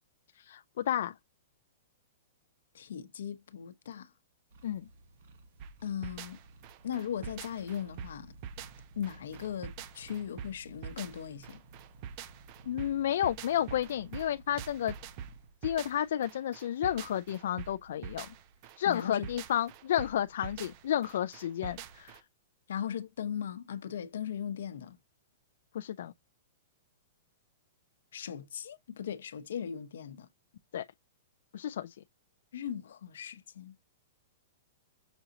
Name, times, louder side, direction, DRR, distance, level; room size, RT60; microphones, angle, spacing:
voice 1, 0.4-1.1 4.6-4.9 12.7-14.9 15.6-18.3 18.8-22.2 25.7-26.1 30.7-30.8 31.5-32.0, left 11 dB, 55° left, 0.3 m, -31 dB
voice 2, 2.7-4.1 5.8-6.4 6.8-8.3 9.0-11.6 18.9-19.3 22.7-25.0 28.1-30.3 32.5-33.8, left 9 dB, 75° left, 0.8 m, -38 dB
sound 1, 4.5-15.5, right 3 dB, 45° right, 1.0 m, -55 dB
sound 2, 5.6-22.2, right 8 dB, 30° right, 0.4 m, -45 dB
6.0 x 2.6 x 2.8 m
hypercardioid pair, 175°, 0 cm